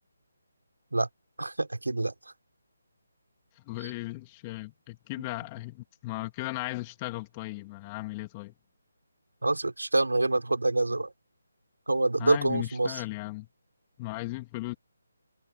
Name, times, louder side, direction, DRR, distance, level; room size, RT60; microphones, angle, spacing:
voice 1, 1.4-2.1 9.4-11.1 11.9-13.0, right 2 dB, 80° right, 4.9 m, -26 dB
voice 2, 3.6-8.5 12.2-13.5 14.0-14.8, left 22 dB, 20° left, 2.9 m, -36 dB
figure-of-eight pair, 150°, 0 cm